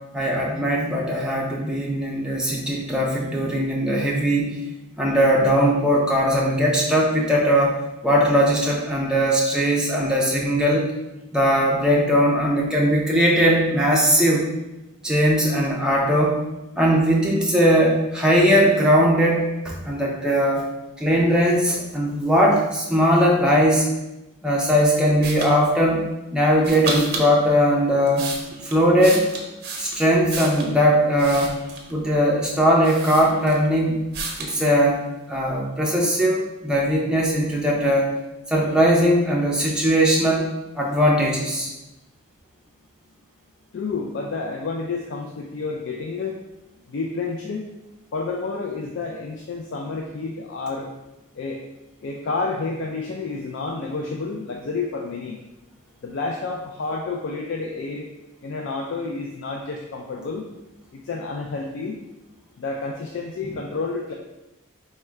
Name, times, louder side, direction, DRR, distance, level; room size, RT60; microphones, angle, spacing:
voice 1, 0.1-4.6 5.0-7.7 8.0-10.9 11.3-14.5 15.0-16.4 16.8-20.6 21.0-23.9 24.4-26.0 26.3-28.3 28.7-29.2 29.8-31.6 31.9-34.0 34.4-38.1 38.5-40.5 40.8-41.7, equal, 5° right, -3 dB, 0.5 m, -19 dB
sound 1, 25.2-25.5 26.6-27.3 27.9-30.7 31.2-32.0 32.5-32.6 32.8-33.7 34.1-34.6, right 3 dB, 45° right, 0.6 m, -32 dB
voice 2, 43.7-46.4 46.9-47.7 48.1-50.9 51.4-51.6 52.0-55.4 56.0-58.1 58.4-60.5 60.9-62.0 62.6-64.1, left 3 dB, 55° left, 1 dB, 0.3 m, -30 dB
3.5 x 2.2 x 4.4 m, 0.99 s
head